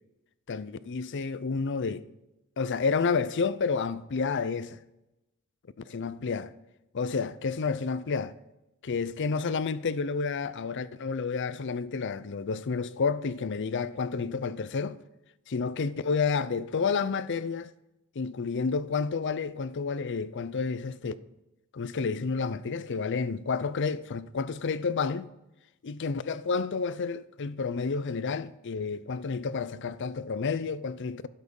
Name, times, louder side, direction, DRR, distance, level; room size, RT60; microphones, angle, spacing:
voice 1, 0.5-2.1 2.6-4.8 5.9-6.5 6.9-8.4 8.8-15.0 15.5-17.7 18.2-21.1 21.7-25.3 25.8-31.3, left 5 dB, 55° left, 0.5 m, -30 dB
12.0 x 7.4 x 5.3 m
head